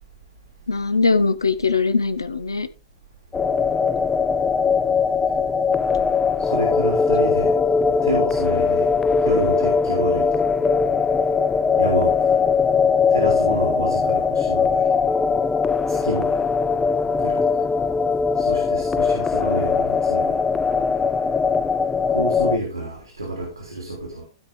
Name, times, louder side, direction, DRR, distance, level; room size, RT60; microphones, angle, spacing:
voice 1, 0.7-2.7, left 4 dB, 75° left, 0.9 m, -21 dB
sound 1, 3.3-22.6, left 5 dB, 15° left, 0.4 m, -20 dB
voice 2, 6.4-7.6 8.0-10.4 11.8-12.4 13.1-14.9 15.9-16.4 17.2-17.4 18.4-20.4 22.1-24.2, right 1 dB, 85° right, 3.2 m, -28 dB
15.5 x 5.3 x 3.6 m
figure-of-eight pair, 100°, 2 cm